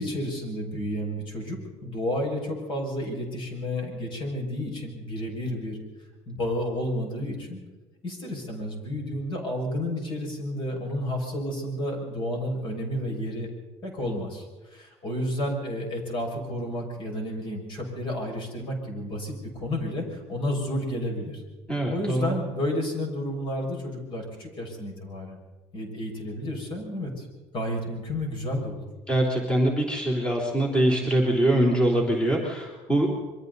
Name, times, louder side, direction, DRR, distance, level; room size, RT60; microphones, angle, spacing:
voice 1, 0.0-5.8 6.3-7.6 8.0-13.5 13.8-21.4 21.9-25.4 25.7-27.3 27.5-28.8, left 1 dB, 50° left, 2 dB, 6.2 m, -31 dB
voice 2, 21.7-22.3 29.1-33.1, right 1 dB, 10° left, -2 dB, 3.4 m, -23 dB
27.5 x 23.0 x 4.1 m, 1.2 s
cardioid pair, 130°, 11 cm